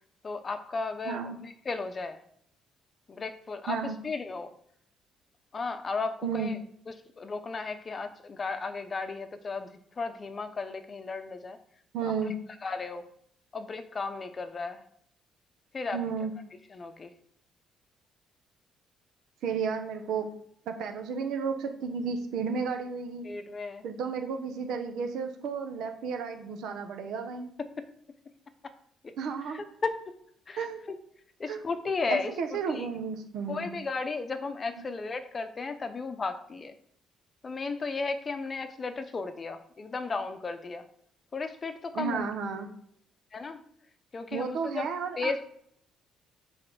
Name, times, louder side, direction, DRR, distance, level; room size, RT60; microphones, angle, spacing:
voice 1, 0.2-2.2 3.1-3.8 4.0-4.5 5.5-6.6 6.9-11.6 12.6-13.0 13.5-14.9 15.7-16.0 16.7-17.1 23.2-23.8 29.0-29.1 29.5-29.9 30.5-31.0 31.4-32.3 32.7-32.9 33.5-36.7 37.4-40.9 41.3-42.3 43.3-43.6 44.1-44.9 45.2-45.5, left 4 dB, 30° left, 9 dB, 0.8 m, -34 dB
voice 2, 1.0-1.4 3.7-4.0 6.2-6.5 11.9-12.3 15.9-16.3 19.4-20.3 20.7-23.3 23.8-27.5 29.2-29.6 30.6-30.8 31.5-31.6 32.1-33.7 41.9-42.7 44.3-45.3, right 6 dB, 75° right, 5 dB, 1.3 m, -32 dB
7.6 x 4.3 x 6.1 m, 0.68 s
cardioid pair, 130°, 0 cm